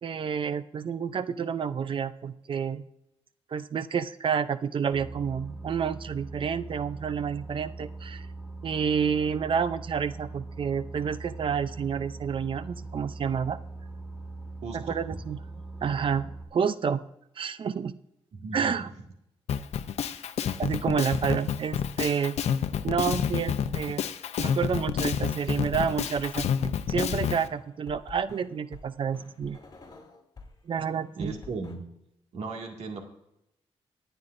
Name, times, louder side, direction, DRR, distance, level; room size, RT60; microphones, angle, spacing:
voice 1, 0.0-2.9 3.5-8.3 8.6-13.6 14.7-15.4 15.8-17.0 17.4-18.0 18.5-18.9 20.6-22.4 22.8-24.0 24.4-26.5 26.9-29.6 30.7-31.3, right 7 dB, 50° right, 13 dB, 0.6 m, -29 dB
Boat Water vehicle, 4.9-16.4, right 3 dB, 10° right, 1.6 m, -41 dB
voice 2, 14.6-15.0 18.4-18.9 23.6-23.7 31.2-31.8 32.3-33.0, right 3 dB, 80° right, 2 dB, 2.2 m, -36 dB
Drum kit, 19.5-27.4, left 8 dB, 80° left, 0.7 m, -29 dB
sound 1, 26.2-30.5 30.8-31.7, left 3 dB, 40° left, 2.9 m, -47 dB
25.5 x 9.1 x 2.6 m, 0.83 s
cardioid pair, 110°, 11 cm